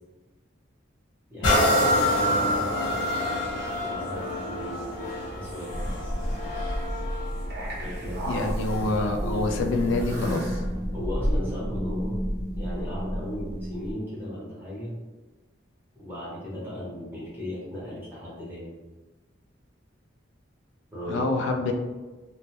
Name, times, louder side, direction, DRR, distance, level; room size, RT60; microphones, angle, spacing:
voice 1, 1.3-5.1 5.3-6.8 7.8-9.8 10.9-12.2 12.6-15.0 15.9-18.7 20.9-21.4, equal, 10° right, -8 dB, 0.7 m, -37 dB
sound 1, 1.4-9.0 9.6-9.7, left 1 dB, 85° left, 0.8 m, -27 dB
sound 2, 5.7-13.9, equal, 50° right, 0.5 m, -31 dB
voice 2, 8.2-10.6 21.1-21.7, left 2 dB, 70° left, 3 dB, 0.3 m, -26 dB
2.1 x 2.1 x 2.8 m, 1.2 s
head